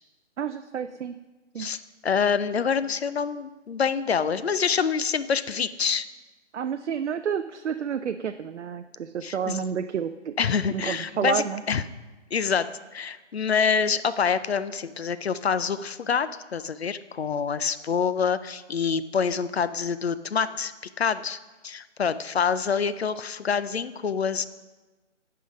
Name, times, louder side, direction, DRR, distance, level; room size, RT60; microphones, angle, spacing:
voice 1, 0.4-1.2 1.5-1.7 6.5-10.3 10.7-11.6, right 7 dB, 70° right, 8 dB, 0.5 m, -30 dB
voice 2, 2.0-6.1 9.2-9.6 10.4-11.8 12.3-12.7 12.9-20.7 21.0-21.4 21.6-24.5, left 6 dB, 60° left, 14 dB, 0.5 m, -26 dB
9.3 x 5.7 x 5.1 m, 1.2 s
hypercardioid pair, 180°, 37 cm